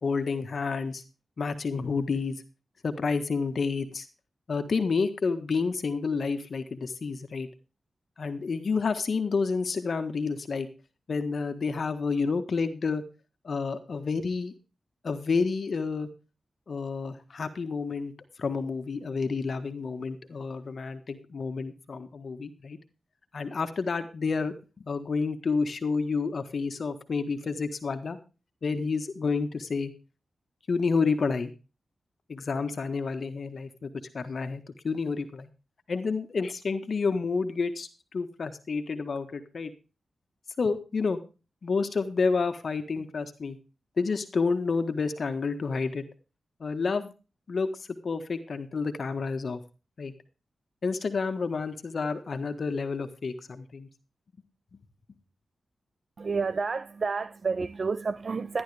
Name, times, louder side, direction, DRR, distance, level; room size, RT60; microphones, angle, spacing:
voice 1, 0.0-1.0 1.4-2.4 2.8-4.1 4.5-7.5 8.2-10.7 11.1-13.0 13.4-14.5 15.0-16.1 16.7-18.1 18.4-22.8 23.3-28.2 28.6-29.9 30.7-31.5 32.3-35.5 35.9-39.7 40.6-41.2 41.6-43.6 44.0-46.0 46.6-47.1 47.5-49.6 50.0-50.1 50.8-53.9, left 4 dB, 60° left, 1.5 m, -29 dB
voice 2, 56.2-58.6, right 4 dB, 55° right, 0.6 m, -30 dB
13.0 x 11.0 x 3.5 m
wide cardioid pair, 85°, 0 cm